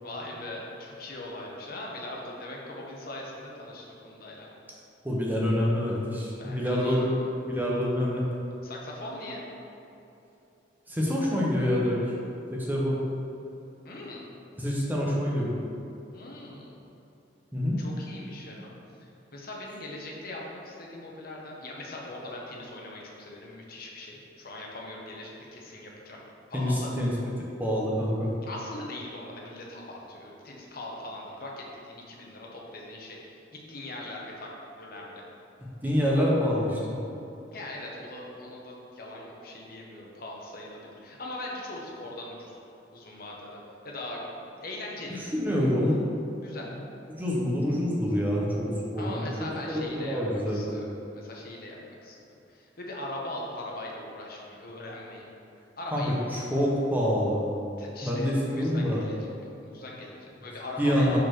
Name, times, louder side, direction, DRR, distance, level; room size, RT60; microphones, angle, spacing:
voice 1, 0.0-4.5 6.4-7.3 8.6-9.4 13.8-14.2 16.1-16.8 17.8-18.7 19.0-26.2 26.5-26.9 28.4-33.4 33.7-34.5 34.8-35.2 37.5-42.6 42.9-43.6 43.8-45.2 46.4-46.7 49.0-50.9 51.1-52.2 52.5-55.3 55.8-56.4 57.8-59.3 59.6-61.2, left 1 dB, 55° left, -2 dB, 1.0 m, -40 dB
voice 2, 5.0-7.2 7.4-8.2 10.9-12.0 12.5-13.0 14.6-15.6 17.5-17.8 26.5-27.1 27.6-28.3 35.8-36.8 45.3-46.1 47.1-49.3 49.7-50.6 55.9-56.0 56.3-57.4 58.0-59.0 60.8-61.2, equal, 10° right, -4 dB, 1.0 m, -26 dB
5.3 x 4.3 x 6.0 m, 2.8 s
head